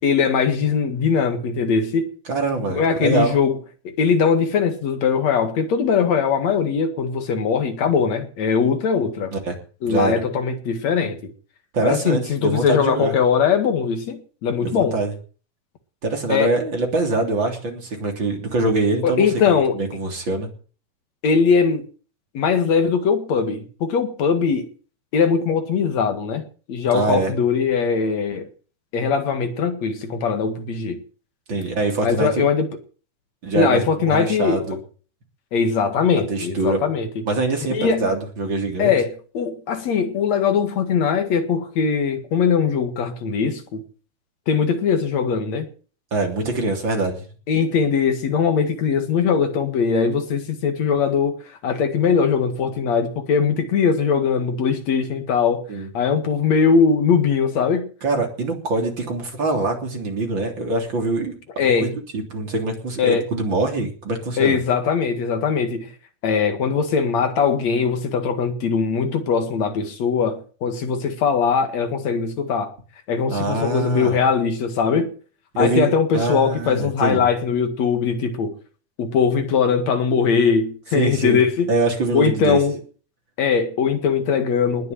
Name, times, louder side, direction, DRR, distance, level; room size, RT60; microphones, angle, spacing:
voice 1, 0.0-2.1 2.7-3.6 4.0-9.3 9.8-11.3 11.8-15.0 16.3-16.5 19.0-19.8 21.2-21.8 22.3-24.7 25.1-26.4 26.7-28.5 28.9-31.0 32.0-32.7 33.5-34.6 35.5-37.1 37.7-38.1 38.8-43.8 44.5-45.7 47.5-51.4 51.6-55.6 55.9-57.9 61.6-62.0 63.0-63.3 64.4-65.9 66.2-72.7 73.1-75.1 75.6-78.6 79.0-81.7 82.1-82.8 83.4-84.9, left 6 dB, 70° left, 3.1 m, -20 dB
voice 2, 2.3-3.4 9.3-9.6 9.8-10.2 11.7-13.1 14.6-15.1 16.0-19.3 19.7-20.5 26.9-27.3 31.5-32.4 33.4-34.8 36.3-36.8 37.3-38.9 46.1-47.2 55.7-55.9 58.0-64.6 73.3-74.2 75.5-77.3 80.9-81.4 81.7-82.6, right 2 dB, 40° right, 3.9 m, -24 dB
20.0 x 7.0 x 9.6 m
omnidirectional pair, 3.3 m